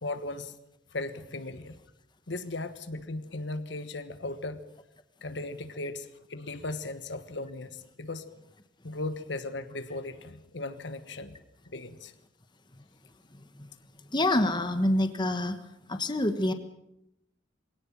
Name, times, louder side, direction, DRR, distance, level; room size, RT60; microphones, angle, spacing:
voice 1, 0.0-0.6 0.9-1.8 2.3-4.6 5.2-8.3 8.8-11.4 11.7-12.1, left 2 dB, 65° left, 11 dB, 1.3 m, -37 dB
voice 2, 14.1-15.6 15.9-16.5, left 1 dB, 25° left, 9 dB, 1.3 m, -26 dB
21.5 x 17.5 x 7.4 m, 0.84 s
head